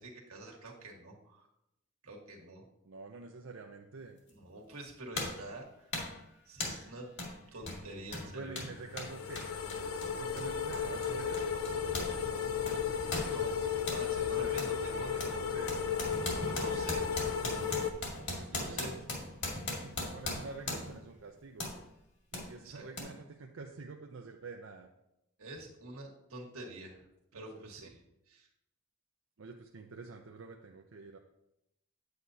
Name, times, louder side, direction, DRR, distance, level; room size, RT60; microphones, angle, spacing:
voice 1, 0.0-1.5 2.0-2.6 4.3-5.9 6.5-7.1 7.5-8.6 13.3-13.6 13.9-15.3 16.2-17.2 17.7-17.8 18.5-18.9 22.6-22.8 25.4-27.1 27.3-28.0 28.3-28.5, right 2 dB, 85° right, 0 dB, 1.6 m, -47 dB
voice 2, 2.8-4.2 8.3-9.5 10.2-11.4 14.2-14.6 15.5-15.8 18.3-19.0 19.7-21.7 22.3-24.9 27.3-27.9 29.4-31.2, right 4 dB, 65° right, 2 dB, 0.5 m, -47 dB
sound 1, 4.3-4.4 5.2-5.5 5.9-6.2 6.6-6.9 7.2-7.4 7.6-12.2 12.4-14.1 14.6-14.8 15.2-21.0 21.6-21.8 22.3-22.5 23.0-23.1, left 2 dB, 55° left, 2.0 m, -39 dB
sound 2, 7.6-15.4, left 4 dB, 30° left, 0.5 m, -55 dB
sound 3, 8.9-17.9, left 6 dB, 75° left, 0.6 m, -34 dB
9.1 x 8.0 x 2.8 m, 0.85 s
head